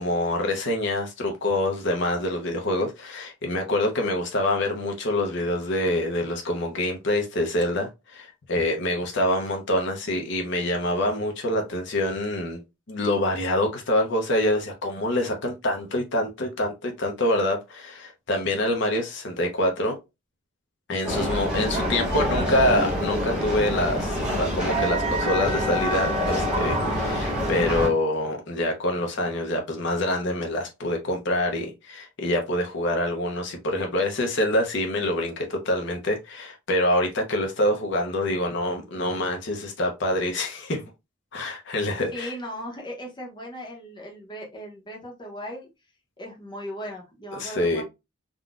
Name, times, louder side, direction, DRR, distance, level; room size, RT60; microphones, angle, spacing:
voice 1, 0.0-12.6 12.9-20.0 20.9-40.8 41.3-42.3 47.3-47.8, left 1 dB, 60° left, 0.7 m, -26 dB
sound 1, 21.0-27.9, equal, 5° right, 1.1 m, -26 dB
voice 2, 42.1-45.7 46.2-47.8, equal, 25° left, 0.8 m, -37 dB
3.7 x 2.2 x 2.4 m
head